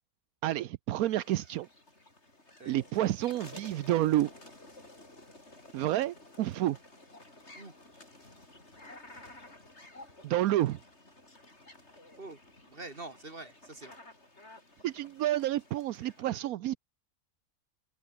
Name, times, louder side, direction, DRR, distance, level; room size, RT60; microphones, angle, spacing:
voice 1, 0.4-1.7 2.7-4.3 5.7-6.8 10.2-10.8 14.8-16.8, right 14 dB, 80° right, 1.1 m, -29 dB
sound 1, 1.0-16.2, left 2 dB, 45° left, 5.9 m, -53 dB
voice 2, 12.7-14.0 16.2-16.4, right 2 dB, 35° right, 3.7 m, -45 dB
open air
omnidirectional pair, 1.6 m